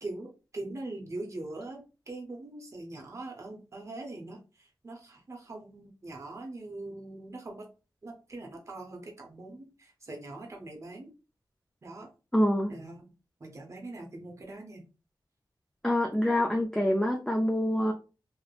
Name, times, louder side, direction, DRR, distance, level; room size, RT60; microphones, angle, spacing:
voice 1, 0.0-7.7 8.0-11.1 11.8-12.1 12.7-13.1 13.4-14.8, right 2 dB, 40° right, 0 dB, 0.6 m, -42 dB
voice 2, 12.3-12.7 15.8-17.9, left 1 dB, 5° left, 0 dB, 0.4 m, -26 dB
2.9 x 2.0 x 2.3 m, 0.32 s
wide cardioid pair, 90°, 8 cm